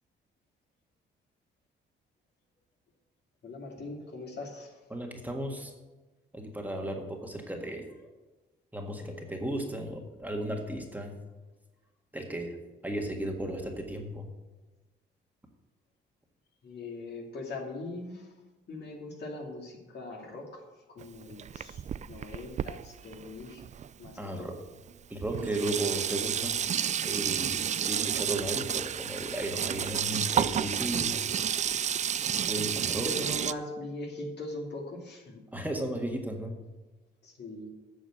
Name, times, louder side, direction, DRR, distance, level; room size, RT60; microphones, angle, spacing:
voice 1, 3.4-4.7 16.6-18.2 18.7-20.5 20.9-21.8 22.1-23.6 24.0-24.5 32.6-35.4 37.2-37.7, left 2 dB, 55° left, 1 dB, 2.7 m, -41 dB
voice 2, 4.9-5.7 6.3-7.9 8.7-11.1 12.1-12.5 12.8-14.3 24.2-24.6 25.1-26.5 27.0-31.1 32.5-33.2 35.5-36.6, right 1 dB, 10° right, 2 dB, 1.8 m, -35 dB
Sink (filling or washing), 21.0-24.1 24.9-25.0 25.2-33.5, right 8 dB, 35° right, 0.4 m, -31 dB
9.2 x 6.5 x 7.8 m, 1.2 s
cardioid pair, 90°, 20 cm